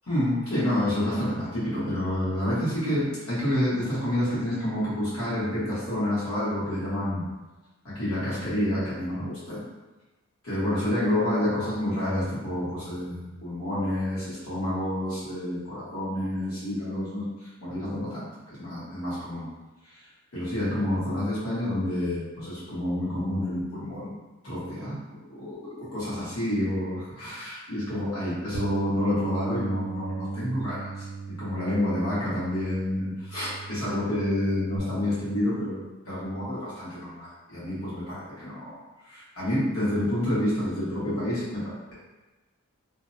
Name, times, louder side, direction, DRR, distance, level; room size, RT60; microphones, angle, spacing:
voice 1, 0.1-7.2 7.8-9.6 10.4-19.5 19.9-20.0 20.3-24.2 24.4-31.0 31.4-38.8 39.1-41.9, left 1 dB, 80° left, -10 dB, 1.3 m, -29 dB
Bass guitar, 28.5-34.8, right 2 dB, 80° right, 0.4 m, -34 dB
2.6 x 2.1 x 2.6 m, 1.1 s
head